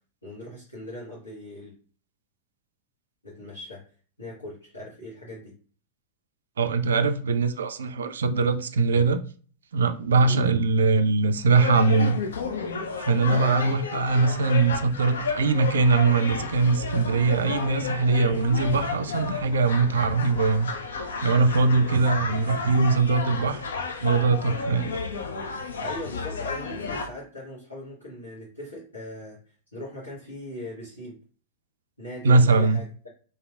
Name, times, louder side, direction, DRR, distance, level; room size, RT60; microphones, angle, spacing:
voice 1, 0.2-1.7 3.2-3.8 4.2-5.5 10.2-10.4 13.3-13.6 25.8-29.4 29.7-31.2 32.0-33.1, left 1 dB, 85° left, 1.2 m, -39 dB
voice 2, 6.6-9.2 9.7-12.2 13.0-20.7 21.2-23.6 24.0-24.9 32.2-32.8, right 4 dB, 65° right, 0.3 m, -22 dB
sound 1, 11.6-27.1, left 4 dB, 65° left, 0.4 m, -32 dB
3.2 x 2.7 x 2.3 m
figure-of-eight pair, 90°, 0 cm